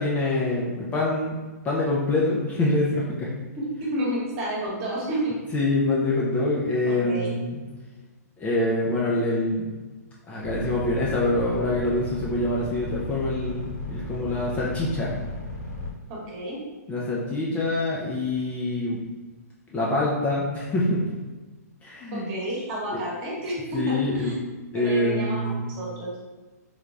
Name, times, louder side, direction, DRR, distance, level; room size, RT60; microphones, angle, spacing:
voice 1, 0.0-1.4 1.6-3.3 5.5-7.6 8.4-9.7 10.3-15.1 16.9-19.0 19.7-21.1 21.8-22.3 22.9-23.0 23.7-24.3 24.7-25.7, left 2 dB, 15° left, -5 dB, 0.4 m, -25 dB
voice 2, 3.6-5.3 7.1-7.3 16.1-16.6 22.1-24.3 24.7-25.4 25.8-26.1, right 1 dB, 35° right, -4 dB, 1.1 m, -30 dB
sound 1, 10.4-15.9, left 1 dB, 90° left, 1.1 m, -34 dB
3.3 x 3.0 x 2.5 m, 1.3 s
hypercardioid pair, 140°, 9 cm